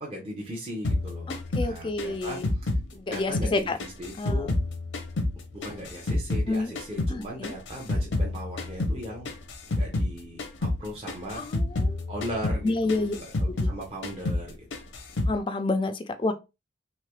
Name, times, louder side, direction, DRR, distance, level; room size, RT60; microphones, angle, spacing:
voice 1, 0.0-2.7 3.1-4.5 5.5-9.3 9.8-10.4 10.8-11.4 12.1-14.6, equal, 30° right, 0.7 m, -38 dB
sound 1, 0.8-3.5 3.8-6.5 6.8-10.1 10.4-10.8 11.1-13.8 14.0-14.5 14.7-15.4, left 2 dB, 85° left, 0.7 m, -29 dB
voice 2, 1.3-2.5 2.9-3.8 4.2-4.5 6.5-6.7 7.1-7.6 11.3-12.0 12.6-13.1 13.6-13.7 15.2-16.3, left 2 dB, 25° left, 0.3 m, -29 dB
3.2 x 3.1 x 2.2 m
head